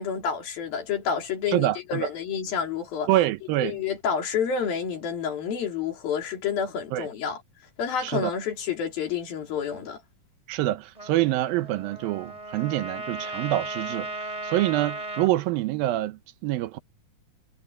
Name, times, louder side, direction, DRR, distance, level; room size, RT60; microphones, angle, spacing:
voice 1, 0.0-3.1 3.6-7.4 7.8-10.0, left 7 dB, 75° left, 5.0 m, -29 dB
voice 2, 1.5-2.1 3.1-3.8 6.9-7.1 8.0-8.3 10.5-16.8, right 15 dB, 80° right, 2.6 m, -26 dB
Trumpet, 10.9-15.3, right 2 dB, 10° right, 3.0 m, -36 dB
omnidirectional pair, 4.2 m